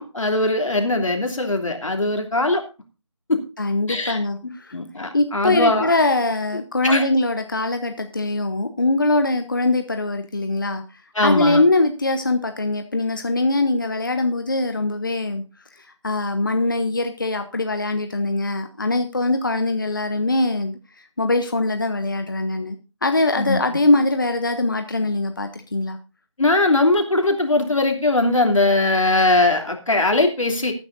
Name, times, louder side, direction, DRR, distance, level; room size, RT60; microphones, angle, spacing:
voice 1, 0.0-2.6 3.3-3.4 3.9-4.2 4.7-6.0 6.8-7.0 11.1-11.6 23.4-23.6 26.4-30.7, left 2 dB, 90° left, 3 dB, 2.9 m, -20 dB
voice 2, 3.6-4.8 5.1-10.8 11.2-15.4 16.0-20.8 21.2-22.8 23.0-26.0, left 2 dB, 40° left, 7 dB, 0.8 m, -22 dB
18.0 x 9.7 x 2.6 m, 0.31 s
figure-of-eight pair, 180°, 16 cm